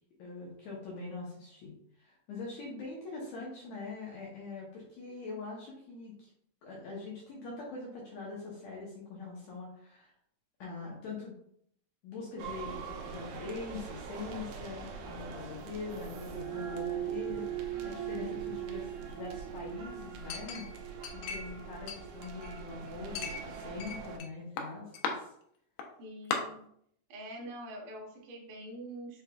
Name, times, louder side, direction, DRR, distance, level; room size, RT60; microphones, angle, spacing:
voice 1, 0.2-6.3 6.6-10.1 10.6-11.3 12.0-20.7 21.1-25.3, left 3 dB, 70° left, -4 dB, 2.0 m, -43 dB
sound 1, 12.4-24.2, right 8 dB, 85° right, 2.2 m, -41 dB
Chink clink, 20.3-21.6 21.9-22.7 23.2-24.3 24.6-25.1 25.8-25.9 26.3-26.4, left 5 dB, 90° left, 2.3 m, -37 dB
voice 2, 26.0-26.6 27.1-29.2, right 1 dB, 65° right, -3 dB, 2.1 m, -44 dB
5.8 x 3.1 x 2.3 m, 0.69 s
omnidirectional pair, 3.8 m